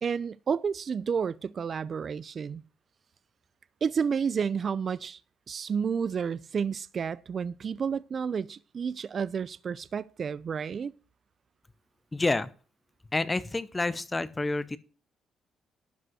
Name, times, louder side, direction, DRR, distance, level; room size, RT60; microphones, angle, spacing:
voice 1, 0.0-2.6 3.8-5.2 5.5-10.9, right 6 dB, 50° right, 0.5 m, -31 dB
voice 2, 12.1-12.5 13.1-14.8, left 2 dB, 20° left, 0.8 m, -28 dB
12.0 x 5.2 x 7.9 m
cardioid pair, 90°, 0 cm